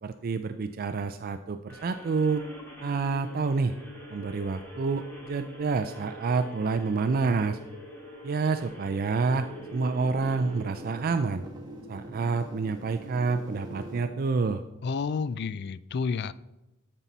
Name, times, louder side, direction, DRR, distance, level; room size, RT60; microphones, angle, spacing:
voice 1, 0.0-2.5 2.8-3.7 4.1-7.6 8.2-9.5 9.7-11.4 11.9-14.6, right 4 dB, 45° right, 9 dB, 0.4 m, -28 dB
sound 1, 1.7-10.7, equal, 10° left, 2.4 m, -45 dB
sound 2, 9.0-14.0, right 1 dB, 20° right, 1.9 m, -44 dB
voice 2, 14.8-16.3, left 5 dB, 55° left, 16 dB, 0.4 m, -30 dB
13.0 x 5.5 x 4.1 m, 0.98 s
head